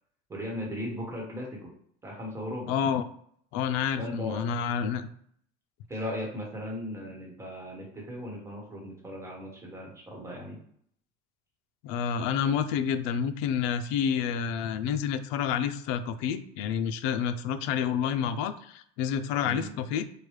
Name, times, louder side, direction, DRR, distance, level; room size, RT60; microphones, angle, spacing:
voice 1, 0.3-1.7 2.0-2.8 4.0-4.5 5.9-10.6 19.4-19.7, left 1 dB, 15° right, -2 dB, 1.1 m, -37 dB
voice 2, 2.7-3.0 3.5-5.1 11.8-20.0, left 8 dB, 80° left, 10 dB, 0.4 m, -29 dB
4.7 x 2.2 x 3.2 m, 0.65 s
cardioid pair, 145°, 19 cm